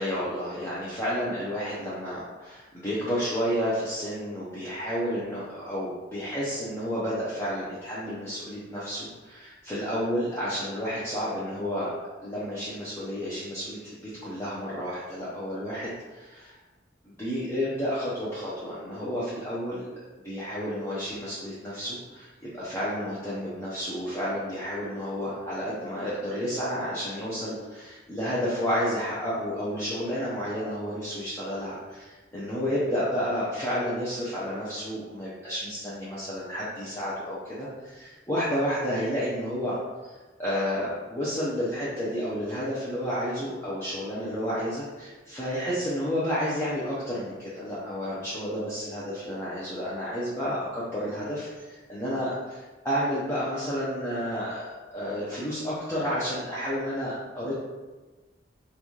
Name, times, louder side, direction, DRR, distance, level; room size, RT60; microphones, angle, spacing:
voice 1, 0.0-11.9 12.2-16.5 17.0-19.8 20.2-39.8 40.0-54.6 54.9-57.6, equal, 15° left, -9 dB, 0.6 m, -31 dB
3.9 x 2.3 x 3.0 m, 1.2 s
head